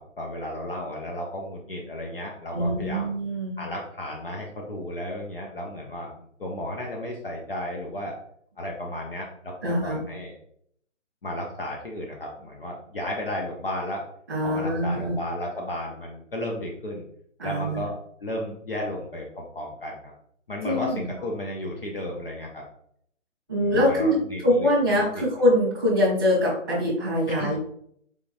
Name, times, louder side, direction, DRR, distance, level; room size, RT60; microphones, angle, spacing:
voice 1, 0.0-3.1 3.6-6.1 6.4-8.2 8.6-10.4 11.2-14.0 14.4-17.0 17.4-17.9 18.2-20.1 20.5-22.6 23.6-24.7 25.1-25.3 27.4-27.6, left 1 dB, 45° left, -1 dB, 0.7 m, -33 dB
voice 2, 2.5-3.6 9.6-10.0 14.3-15.1 17.4-17.8 20.6-21.0 23.5-24.2 24.4-27.6, equal, ahead, -10 dB, 1.1 m, -23 dB
4.8 x 3.7 x 2.5 m, 0.68 s
hypercardioid pair, 175°, 38 cm